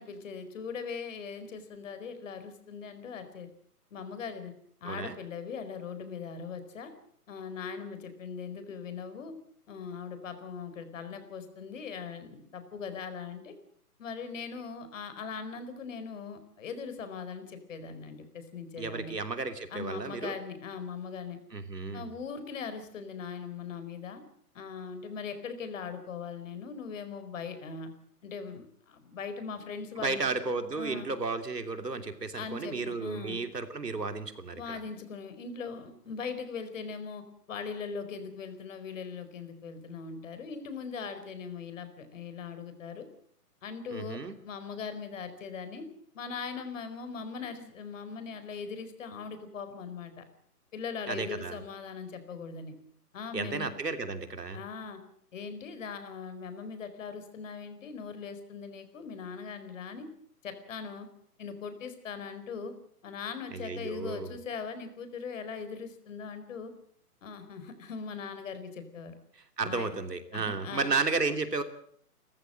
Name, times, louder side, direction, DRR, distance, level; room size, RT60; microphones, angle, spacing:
voice 1, 0.0-3.5 3.9-4.5 4.8-6.9 7.3-9.3 9.7-13.5 14.0-19.2 19.7-21.4 21.9-24.2 24.5-27.9 28.2-30.3 30.7-31.1 32.3-33.4 34.5-43.1 43.6-44.2 44.4-45.8 46.1-50.2 50.7-52.7 53.1-53.7 54.5-55.0 55.3-60.1 60.4-61.1 61.4-62.7 63.0-66.7 67.2-69.1 69.6-69.9 70.3-70.9, left 5 dB, 55° left, 10 dB, 4.7 m, -40 dB
voice 2, 4.8-5.2 18.8-20.4 21.5-22.1 30.0-34.8 43.9-44.4 51.1-51.6 53.3-54.6 63.5-64.3 69.4-71.6, right 4 dB, 90° right, 8 dB, 3.0 m, -33 dB
29.0 x 14.5 x 7.7 m, 0.65 s
hypercardioid pair, 145°, 47 cm